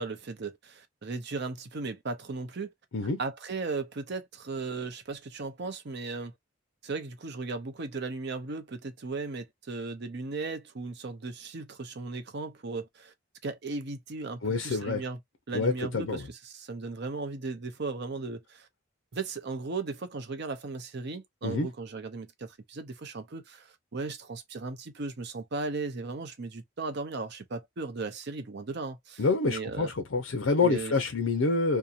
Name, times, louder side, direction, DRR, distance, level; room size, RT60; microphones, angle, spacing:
voice 1, 0.0-2.7 3.2-6.3 6.8-13.1 13.4-15.2 15.5-18.7 19.1-29.9 30.6-30.9, right 3 dB, 55° right, 0.7 m, -36 dB
voice 2, 14.4-15.0 15.5-16.3 21.4-21.7 29.2-31.8, left 3 dB, 65° left, 0.6 m, -27 dB
2.8 x 2.1 x 2.4 m
head